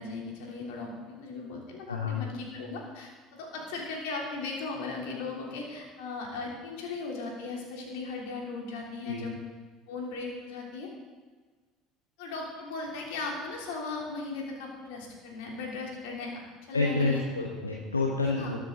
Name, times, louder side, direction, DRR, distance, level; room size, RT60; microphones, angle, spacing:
voice 1, 0.0-9.3 9.9-10.9 12.2-16.3 16.7-17.2 18.3-18.5, left 3 dB, 65° left, -1 dB, 3.2 m, -37 dB
voice 2, 1.9-2.3 9.0-9.2 16.7-18.6, left 3 dB, 85° left, -1 dB, 1.0 m, -28 dB
21.0 x 7.6 x 3.9 m, 1.4 s
figure-of-eight pair, 65°, 0 cm